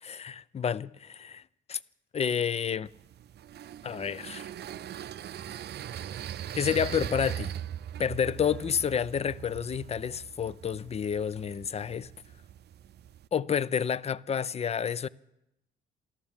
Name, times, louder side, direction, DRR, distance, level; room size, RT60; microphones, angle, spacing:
voice 1, 0.0-1.4 1.7-1.8 2.1-2.9 3.8-4.5 6.5-7.5 8.0-12.1 13.3-15.1, left 7 dB, 30° left, 0.5 m, -30 dB
sound 1, 2.9-13.3, right 10 dB, 55° right, 0.5 m, -40 dB
13.0 x 13.0 x 7.2 m
cardioid pair, 90°, 20 cm